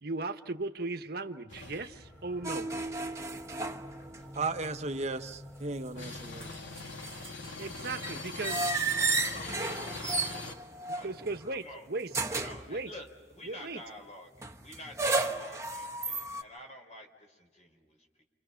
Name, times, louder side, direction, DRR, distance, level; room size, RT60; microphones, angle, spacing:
voice 1, 0.0-2.7 7.6-8.6 10.9-12.2 12.7-12.9 13.4-13.8, right 3 dB, 55° right, 1.2 m, -37 dB
sound 1, 1.5-10.5, left 3 dB, 85° left, 2.7 m, -44 dB
sound 2, 1.9-13.3, equal, 5° left, 4.4 m, -53 dB
sound 3, 2.4-4.4 4.6-4.7 6.2-11.5 12.1-12.7 14.4-16.4, right 3 dB, 15° right, 1.3 m, -33 dB
voice 2, 4.3-6.6, right 3 dB, 35° right, 1.0 m, -35 dB
voice 3, 8.0-11.1 11.5-11.9 12.3-18.2, left 1 dB, 40° left, 4.7 m, -49 dB
29.5 x 28.0 x 5.8 m
head